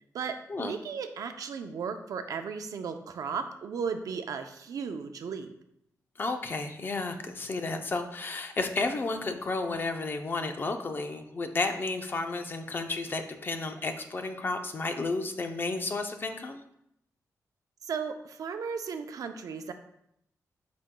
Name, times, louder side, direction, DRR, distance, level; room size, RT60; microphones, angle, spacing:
voice 1, 0.1-5.5 17.8-19.7, right 6 dB, 80° right, 7 dB, 0.6 m, -35 dB
voice 2, 6.2-16.6, left 3 dB, 35° left, 6 dB, 0.6 m, -32 dB
8.3 x 5.2 x 2.2 m, 0.76 s
wide cardioid pair, 135°, 6 cm